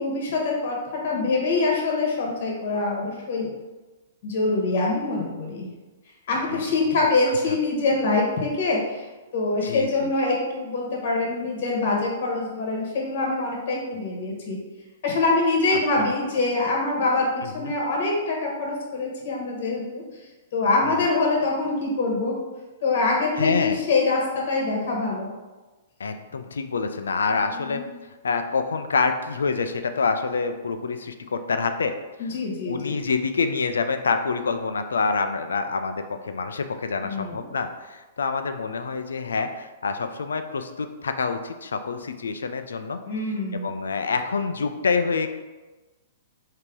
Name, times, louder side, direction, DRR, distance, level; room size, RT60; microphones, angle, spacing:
voice 1, 0.0-3.5 4.2-5.7 6.3-9.0 9.3-14.6 15.0-17.3 17.5-20.0 20.5-22.3 22.8-25.3 27.3-27.8 32.2-33.0 37.0-37.4 43.1-43.7, left 3 dB, 55° left, -1 dB, 1.2 m, -24 dB
voice 2, 9.6-10.1 15.7-16.1 17.4-17.7 20.8-21.1 23.4-23.8 26.0-27.8 28.2-31.9 32.6-43.0 43.5-45.3, left 4 dB, 75° left, 8 dB, 0.4 m, -27 dB
3.6 x 2.8 x 4.6 m, 1.2 s
hypercardioid pair, 115°, 0 cm